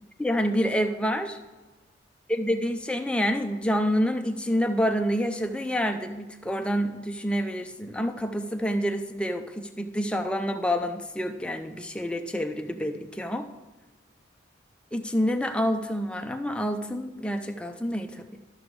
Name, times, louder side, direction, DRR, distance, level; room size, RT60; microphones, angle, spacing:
voice 1, 0.2-1.4 2.3-13.5 14.9-18.4, equal, 5° left, 5 dB, 0.5 m, -28 dB
12.5 x 6.1 x 3.2 m, 1.2 s
head